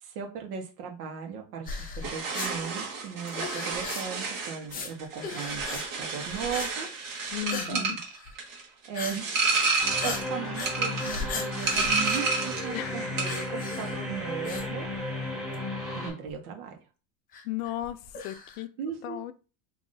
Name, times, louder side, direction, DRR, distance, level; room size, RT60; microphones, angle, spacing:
voice 1, 0.0-6.9 7.5-8.0 8.5-9.3 10.0-14.9 15.9-16.8 18.8-19.2, right 7 dB, 80° right, 1.4 m, -37 dB
sound 1, 1.7-2.5 3.3-4.2 4.6-4.9 5.2-5.8 6.1-6.7 7.0-7.7 8.0-8.3 8.9-9.2 9.5-9.6 10.0-12.8 13.2-14.0 14.4-15.2 15.5-15.6 16.3-16.4 17.3-18.6, left 4 dB, 20° left, 0.7 m, -38 dB
sound 2, 2.0-12.7 13.0-13.5, right 4 dB, 50° right, 1.7 m, -30 dB
voice 2, 7.3-8.0 12.7-13.1 17.4-18.7 19.0-19.3, left 14 dB, 65° left, 0.5 m, -35 dB
sound 3, 9.8-16.1, left 1 dB, ahead, 2.3 m, -34 dB
5.5 x 3.0 x 2.6 m
cardioid pair, 165°, 43 cm